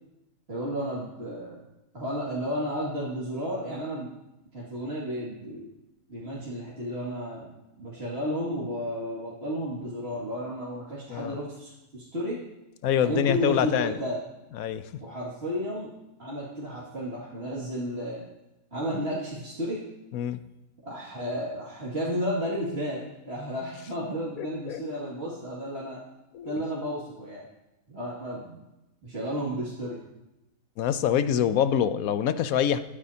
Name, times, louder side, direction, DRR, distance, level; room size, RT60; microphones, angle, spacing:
voice 1, 0.5-1.6 1.9-4.1 4.5-5.7 6.1-7.5 7.8-12.4 13.0-14.2 15.0-15.9 16.2-18.2 18.7-19.8 20.8-23.0 23.3-26.0 26.4-27.4 27.9-28.6 29.0-30.0, equal, 45° right, -8 dB, 2.4 m, -32 dB
voice 2, 12.8-14.0 14.5-14.9 20.1-20.4 24.4-24.8 26.3-26.5 30.8-32.8, left 9 dB, 85° left, 12 dB, 1.1 m, -25 dB
22.0 x 8.5 x 2.8 m, 0.94 s
omnidirectional pair, 1.5 m